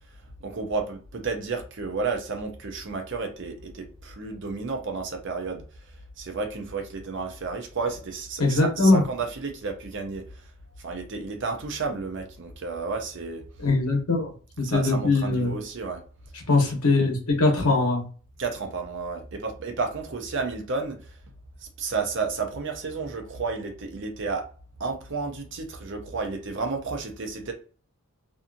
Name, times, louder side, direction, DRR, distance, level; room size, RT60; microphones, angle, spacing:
voice 1, 0.4-5.6 6.2-10.4 10.8-13.4 14.6-16.0 16.6-16.7 18.4-21.1 21.6-24.5 24.8-27.5, right 4 dB, 55° right, 0.6 m, -32 dB
voice 2, 8.4-9.0 13.6-14.3 14.6-15.5 16.5-18.1, left 3 dB, 85° left, 1.1 m, -21 dB
2.7 x 2.4 x 2.5 m
head